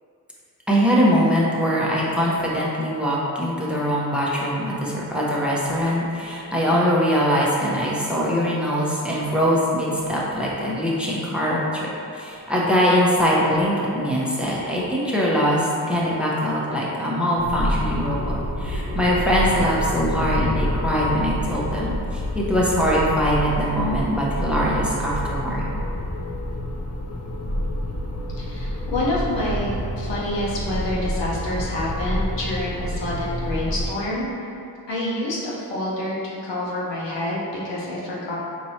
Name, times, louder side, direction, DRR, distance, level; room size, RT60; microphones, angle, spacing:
voice 1, 0.7-25.7, equal, ahead, -6 dB, 0.8 m, -22 dB
sound 1, 17.4-33.9, equal, 35° left, 0.6 m, -28 dB
voice 2, 28.4-34.3 34.9-36.1 36.4-38.4, left 1 dB, 75° left, -7 dB, 1.0 m, -27 dB
4.5 x 3.0 x 2.8 m, 2.7 s
cardioid pair, 45°, 43 cm